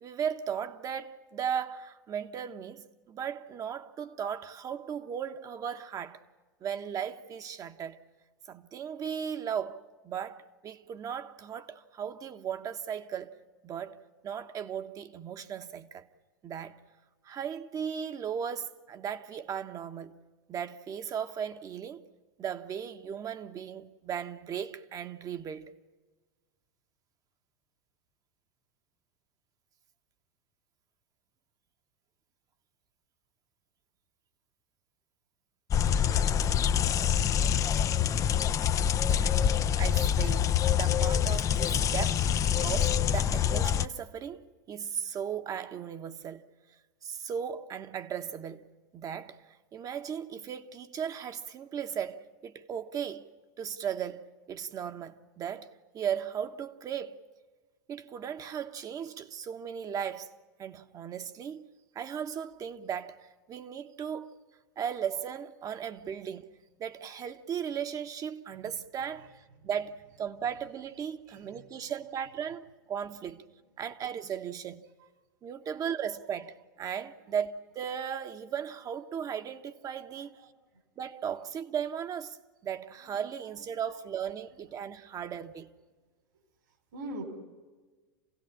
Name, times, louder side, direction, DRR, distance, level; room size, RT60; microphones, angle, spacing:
voice 1, 0.0-6.2 6.6-8.0 8.5-13.3 13.6-14.0 14.2-16.1 16.4-16.8 17.2-20.2 20.5-22.0 22.4-25.7 39.0-39.5 39.8-46.5 47.0-53.3 53.6-55.7 55.9-57.2 57.9-61.7 61.9-64.3 64.8-66.5 66.8-73.4 73.8-74.8 75.4-80.4 81.0-82.4 82.6-85.7, right 8 dB, 35° right, 1.3 m, -37 dB
sound 1, 35.7-43.9, left 9 dB, 30° left, 0.7 m, -26 dB
voice 2, 71.3-71.9 80.3-80.8 83.0-83.1 86.9-87.2, right 1 dB, 70° right, 4.7 m, -44 dB
27.0 x 17.0 x 9.9 m
hypercardioid pair, 95°, 11 cm